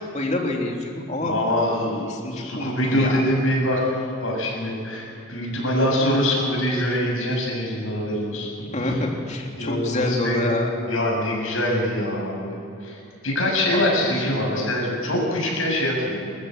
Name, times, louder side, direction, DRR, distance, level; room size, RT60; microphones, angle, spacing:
voice 1, 0.1-1.4 2.1-3.2 6.0-6.1 8.7-10.7 13.7-13.8, left 2 dB, 35° left, 1 dB, 3.2 m, -27 dB
voice 2, 1.2-3.9 4.2-8.5 8.8-8.9 9.5-10.4 10.9-16.3, left 1 dB, 75° left, -2 dB, 7.4 m, -24 dB
27.5 x 15.0 x 8.0 m, 2.7 s
head